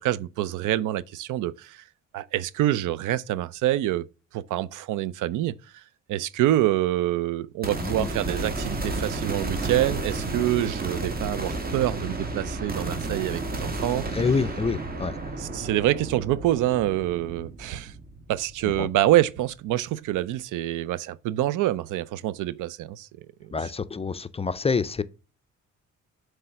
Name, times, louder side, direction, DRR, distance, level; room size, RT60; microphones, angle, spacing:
voice 1, 0.0-1.8 2.1-4.1 4.3-5.8 6.1-14.0 15.4-17.9 18.3-23.1 23.4-23.5, right 14 dB, 85° right, 0.5 m, -26 dB
sound 1, 7.6-19.0, right 2 dB, 30° right, 1.4 m, -32 dB
voice 2, 14.1-15.2 18.8-18.9 23.5-25.0, left 4 dB, 20° left, 0.4 m, -27 dB
7.6 x 3.4 x 5.7 m
cardioid pair, 90°, 30 cm